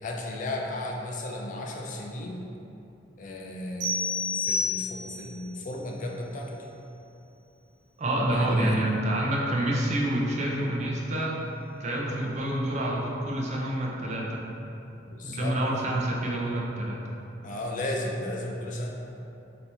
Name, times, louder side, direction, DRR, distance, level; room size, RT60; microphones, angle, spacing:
voice 1, 0.0-2.5 3.2-6.7 8.3-8.8 15.1-15.6 17.4-18.9, left 1 dB, 45° left, 0 dB, 0.4 m, -35 dB
sound 1, 3.8-5.3, left 4 dB, 65° right, 1.1 m, -29 dB
voice 2, 8.0-11.4 11.8-14.4 15.2-17.0, right 1 dB, 40° right, -2 dB, 0.5 m, -27 dB
4.0 x 2.9 x 3.3 m, 2.9 s
head